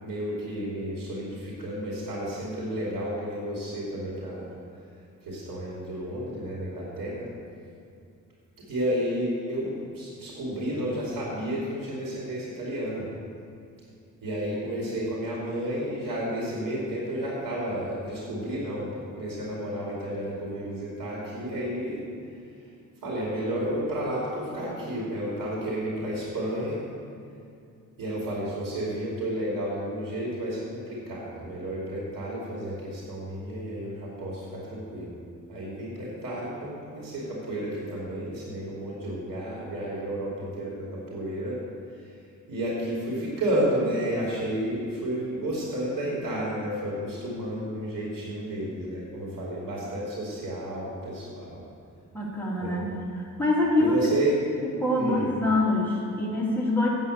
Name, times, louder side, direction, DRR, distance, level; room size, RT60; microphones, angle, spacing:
voice 1, 0.0-4.5 5.2-7.3 8.7-13.1 14.2-22.0 23.0-26.8 28.0-35.2 35.5-41.6 41.9-42.2 42.5-51.6 52.6-52.9 53.8-54.5 54.9-55.3, right 1 dB, 75° right, -6 dB, 3.0 m, -31 dB
voice 2, 52.1-52.9 53.4-54.1 54.8-56.9, left 2 dB, 5° left, -6 dB, 2.7 m, -25 dB
9.0 x 8.0 x 6.7 m, 2.5 s
cardioid pair, 120°, 32 cm